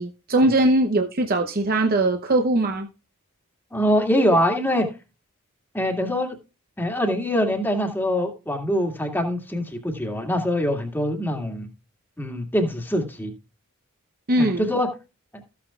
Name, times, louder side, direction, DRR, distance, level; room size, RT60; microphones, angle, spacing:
voice 1, 0.0-2.9 14.3-14.7, right 1 dB, 40° right, 0.8 m, -21 dB
voice 2, 3.7-4.9 5.7-6.4 6.8-11.7 12.2-13.3 14.4-14.9, equal, 10° left, 1.9 m, -23 dB
14.5 x 8.5 x 2.4 m
head